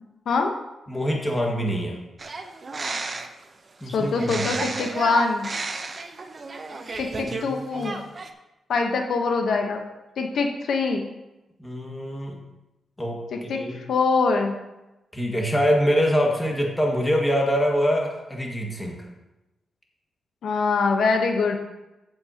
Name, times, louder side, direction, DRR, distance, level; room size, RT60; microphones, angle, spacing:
voice 1, 0.9-2.0 3.8-4.6 7.3-7.9 11.6-12.4 13.0-13.8 15.1-19.0, equal, 10° left, -1 dB, 1.8 m, -25 dB
sound 1, 2.2-3.4 4.1-7.5 7.7-8.3, right 3 dB, 30° right, 0.8 m, -32 dB
voice 2, 3.9-5.5 7.0-8.0 8.7-9.8 10.2-11.0 13.3-14.6 20.4-21.6, left 4 dB, 70° left, 3 dB, 1.0 m, -23 dB
14.0 x 7.7 x 2.9 m, 0.99 s
wide cardioid pair, 150°, 0 cm